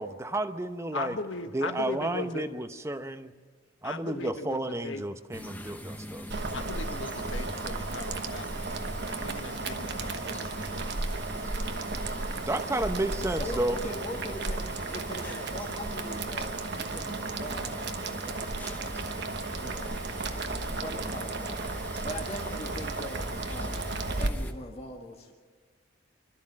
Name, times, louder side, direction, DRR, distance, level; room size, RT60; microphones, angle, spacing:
voice 1, 0.0-1.2 1.5-3.3 3.8-6.4 12.4-13.8, right 1 dB, 15° right, 9 dB, 0.8 m, -32 dB
voice 2, 0.9-2.4 3.8-5.0 6.5-8.6 9.1-10.5 10.8-10.9, left 3 dB, 75° left, 6 dB, 1.6 m, -38 dB
sound 1, 5.3-24.5, left 1 dB, 10° left, 1.1 m, -42 dB
Boiling, 6.3-24.3, right 3 dB, 60° right, 1.2 m, -34 dB
voice 3, 13.4-18.6 19.6-20.0 20.7-23.9 24.2-25.3, left 1 dB, 30° left, -1 dB, 1.8 m, -42 dB
26.5 x 13.0 x 7.5 m, 1.5 s
head